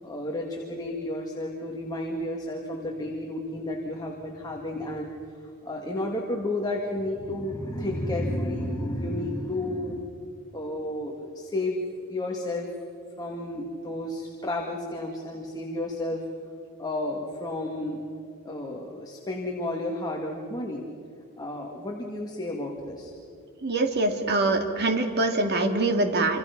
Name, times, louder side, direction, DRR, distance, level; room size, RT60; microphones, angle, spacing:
voice 1, 0.0-5.1 5.6-10.1 10.5-11.8 12.1-12.7 13.2-16.2 16.8-18.0 18.4-20.8 21.4-23.1, left 1 dB, 20° left, 0 dB, 2.1 m, -32 dB
voice 2, 23.6-26.4, right 2 dB, 50° right, 5 dB, 2.3 m, -24 dB
27.5 x 26.5 x 5.9 m, 2.5 s
head